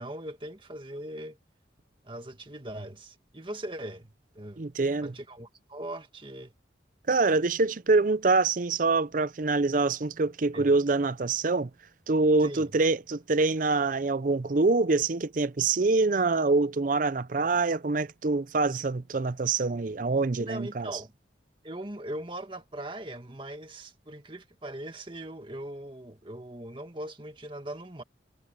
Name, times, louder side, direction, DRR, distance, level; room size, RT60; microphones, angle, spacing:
voice 1, 0.0-1.4 2.0-4.6 5.0-6.5 10.5-10.7 12.4-12.8 20.4-21.1 21.6-28.0, right 1 dB, 25° right, 2.0 m, -40 dB
voice 2, 4.6-5.1 7.1-11.7 12.1-20.9, right 3 dB, 45° right, 0.5 m, -25 dB
head